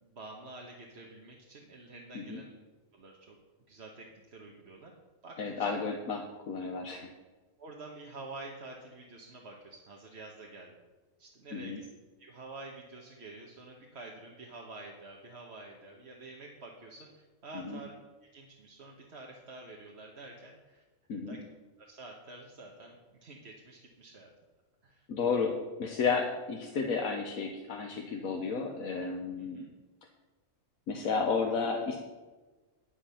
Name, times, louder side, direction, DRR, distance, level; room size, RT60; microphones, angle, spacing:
voice 1, 0.0-2.5 2.9-3.4 3.7-4.9 5.2-5.7 7.6-10.8 11.2-11.9 12.2-17.9 18.3-20.8 21.3-21.4 21.8-24.3 24.8-25.1 29.4-29.7, right 2 dB, 50° right, -1 dB, 1.5 m, -48 dB
voice 2, 5.4-7.1 11.5-11.8 17.5-17.8 21.1-21.4 25.1-29.7 30.9-32.0, left 5 dB, 90° left, 1 dB, 1.5 m, -32 dB
10.0 x 9.9 x 5.7 m, 1.2 s
omnidirectional pair, 1.4 m